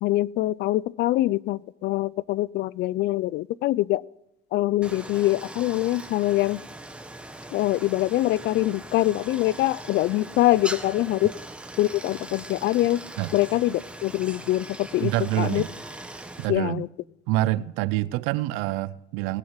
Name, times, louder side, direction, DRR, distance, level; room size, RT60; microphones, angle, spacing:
voice 1, 0.0-4.0 4.5-6.6 7.5-11.3 11.8-13.0 13.3-15.1 15.4-15.6 16.5-16.9, left 16 dB, 60° left, 0.4 m, -24 dB
Stream, 4.8-16.5, right 1 dB, 5° right, 1.2 m, -40 dB
voice 2, 15.0-15.7 16.4-16.8 17.3-19.4, right 16 dB, 90° right, 0.5 m, -26 dB
18.5 x 7.8 x 5.7 m
cardioid pair, 125°, 20 cm